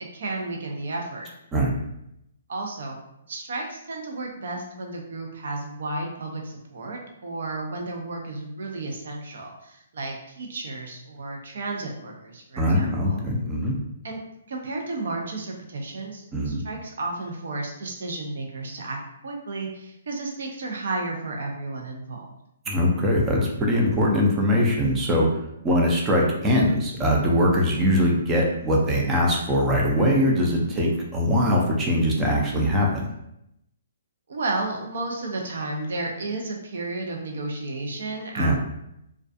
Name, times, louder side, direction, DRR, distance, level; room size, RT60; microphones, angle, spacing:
voice 1, 0.1-1.3 2.5-3.0 3.3-13.2 14.0-14.2 14.5-22.3 34.3-38.5, right 2 dB, 65° right, 1 dB, 0.6 m, -33 dB
voice 2, 12.6-13.8 16.3-16.6 22.7-33.1 38.4-38.5, equal, 15° right, -2 dB, 0.4 m, -22 dB
2.3 x 2.3 x 2.5 m, 0.81 s
hypercardioid pair, 165°, 0 cm